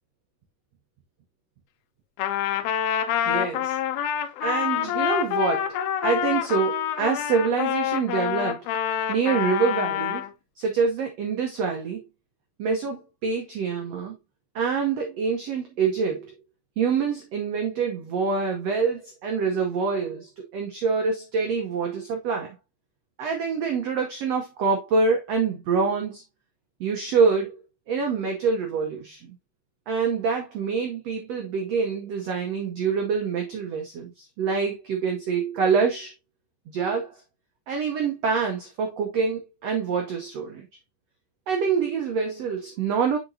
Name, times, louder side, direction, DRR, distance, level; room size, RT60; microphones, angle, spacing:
Trumpet, 2.2-10.3, left 11 dB, 90° left, 2.6 m, -26 dB
voice 1, 3.2-3.8 4.4-5.7 6.0-8.6 9.1-10.2 10.6-12.0 12.6-14.2 14.5-16.3 16.8-22.5 23.2-26.2 26.8-27.6 27.9-29.3 29.9-36.1 36.7-37.2 37.7-40.7 41.5-43.2, right 5 dB, 85° right, 1.4 m, -26 dB
6.9 x 5.1 x 2.7 m
omnidirectional pair, 4.3 m